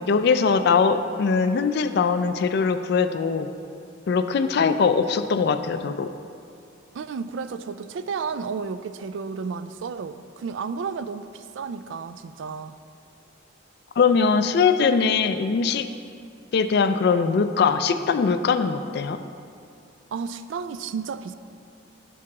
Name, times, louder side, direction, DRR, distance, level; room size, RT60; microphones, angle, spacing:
voice 1, 0.0-3.5 4.1-6.1 14.0-15.9 16.5-19.2, left 5 dB, 55° left, 10 dB, 0.3 m, -21 dB
voice 2, 6.9-12.8 20.1-21.4, right 5 dB, 70° right, 12 dB, 0.3 m, -32 dB
12.0 x 4.7 x 3.6 m, 2.4 s
head